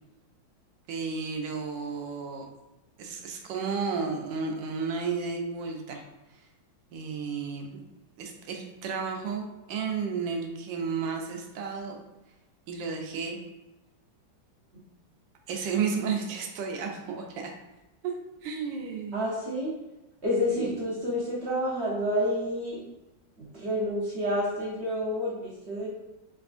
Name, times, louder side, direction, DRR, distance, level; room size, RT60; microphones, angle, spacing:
voice 1, 0.9-2.5 3.0-6.0 6.9-7.8 8.2-12.0 12.7-13.4 15.5-17.5 18.0-18.1 18.4-19.2 20.6-20.7, right 5 dB, 75° right, 2 dB, 1.3 m, -32 dB
voice 2, 19.1-19.7 20.2-22.8 23.4-25.9, equal, 50° right, -7 dB, 0.8 m, -29 dB
4.1 x 3.4 x 2.5 m, 0.99 s
omnidirectional pair, 2.2 m